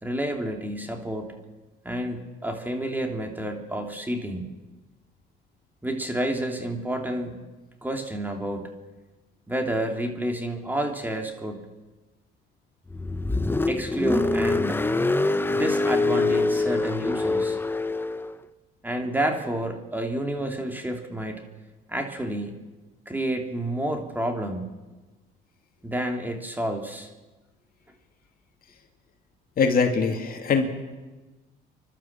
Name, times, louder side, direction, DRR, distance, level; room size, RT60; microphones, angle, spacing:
voice 1, 0.0-1.4 1.8-4.5 5.8-7.4 7.8-8.7 9.5-11.6 13.7-15.1 15.5-17.6 18.8-21.4 21.9-22.5 23.1-24.6 25.8-27.1, right 1 dB, 10° right, 3 dB, 3.0 m, -29 dB
Car, 12.9-18.3, left 3 dB, 10° left, 0.9 m, -24 dB
voice 2, 29.6-30.7, left 5 dB, 50° left, 4 dB, 2.6 m, -22 dB
30.0 x 12.5 x 7.5 m, 1.2 s
cardioid pair, 95°, 19 cm